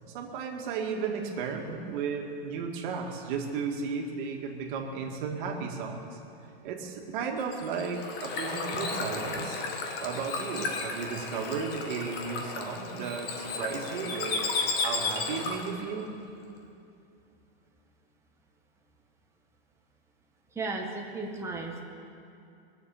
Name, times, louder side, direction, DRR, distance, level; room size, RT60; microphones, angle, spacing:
voice 1, 0.1-6.2 6.6-9.6 10.0-14.4 14.8-16.1, right 5 dB, 50° right, 1 dB, 2.2 m, -34 dB
Bird / Water, 7.4-15.8, left 4 dB, 30° left, 1.5 m, -34 dB
voice 2, 20.5-21.8, right 3 dB, 10° right, -1 dB, 1.5 m, -34 dB
21.0 x 7.4 x 7.3 m, 2.6 s
supercardioid pair, 150°, 32 cm